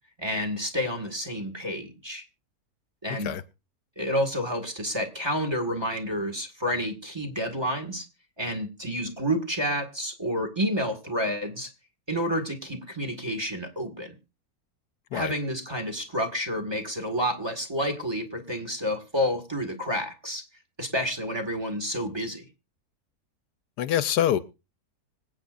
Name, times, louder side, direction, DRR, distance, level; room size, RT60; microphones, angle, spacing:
voice 1, 0.2-2.2 3.0-3.3 4.0-8.1 8.4-11.7 12.1-14.1 15.1-20.4 20.8-22.4, equal, 15° right, 2.0 m, -29 dB
voice 2, 23.8-24.4, left 11 dB, 85° left, 1.3 m, -24 dB
25.5 x 8.7 x 2.6 m
omnidirectional pair, 1.7 m